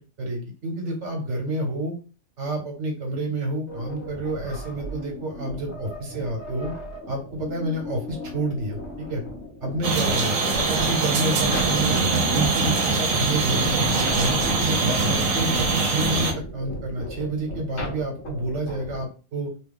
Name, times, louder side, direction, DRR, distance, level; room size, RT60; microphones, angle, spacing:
voice 1, 0.2-1.9 2.4-6.7 7.1-9.2 9.6-12.0 12.3-13.7 14.1-15.5 15.8-19.5, right 1 dB, 65° right, 2 dB, 1.4 m, -29 dB
sound 1, 3.7-19.0, equal, 60° left, 1.2 m, -37 dB
sound 2, 9.8-16.3, right 3 dB, 90° right, 1.1 m, -22 dB
3.1 x 2.3 x 3.5 m, 0.34 s
omnidirectional pair, 1.3 m